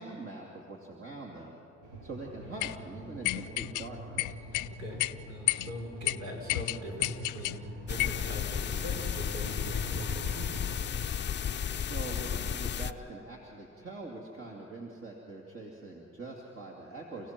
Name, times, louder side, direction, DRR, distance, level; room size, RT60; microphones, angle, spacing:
voice 1, 0.0-1.6 2.0-4.4 11.8-17.3, right 2 dB, 45° right, -2 dB, 2.8 m, -43 dB
sound 1, 1.8-10.9, right 1 dB, 85° right, 3.1 m, -45 dB
sound 2, 2.6-2.8 3.2-3.9 4.2-4.7 5.0-5.1 5.5-5.7 6.1-6.2 6.5-7.6 8.0-8.2, left 18 dB, 90° left, 0.5 m, -30 dB
voice 2, 5.3-10.5, left 1 dB, 65° right, -1 dB, 5.7 m, -41 dB
sound 3, 7.9-12.9, left 8 dB, 35° left, 0.6 m, -33 dB
29.0 x 16.0 x 6.1 m, 2.7 s
cardioid pair, 90°, 30 cm